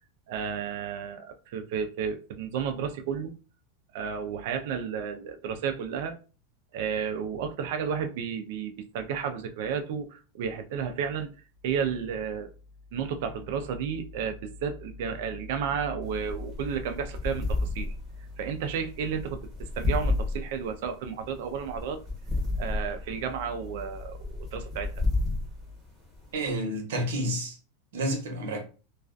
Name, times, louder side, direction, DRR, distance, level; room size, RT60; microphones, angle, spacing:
voice 1, 0.3-3.3 3.9-6.2 6.7-11.3 11.6-12.5 12.9-17.9 18.4-22.0 22.6-25.0, right 6 dB, 55° right, 0.4 m, -32 dB
sound 1, 16.0-26.6, left 2 dB, ahead, 0.9 m, -32 dB
voice 2, 26.3-27.6 27.9-28.6, right 1 dB, 90° right, 0.9 m, -30 dB
2.3 x 2.2 x 2.4 m
supercardioid pair, 175°, 0 cm